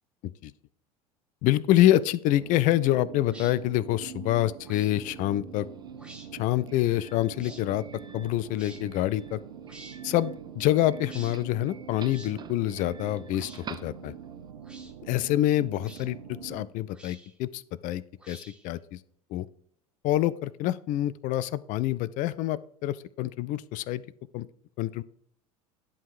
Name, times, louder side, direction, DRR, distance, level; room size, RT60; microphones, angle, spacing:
voice 1, 1.4-5.7 6.3-7.8 8.1-9.4 10.0-14.1 15.1-19.0 19.3-19.5 20.0-24.0 24.3-24.5 24.8-25.0, left 14 dB, 45° left, 18 dB, 0.4 m, -26 dB
sound 1, 2.3-16.7, right 8 dB, 65° right, 0.9 m, -44 dB
sound 2, 3.3-3.5 4.6-4.9 5.9-6.3 7.4-7.6 8.5-8.8 9.7-10.0 11.0-11.4 12.1-12.3 13.3-13.6 14.6-14.9 15.8-16.1 16.9-17.4 18.2-18.7, right 1 dB, 5° right, 1.2 m, -49 dB
Doorbell, 5.5-14.5, right 6 dB, 25° right, 0.5 m, -50 dB
10.5 x 3.7 x 4.7 m, 0.67 s
figure-of-eight pair, 70°, 19 cm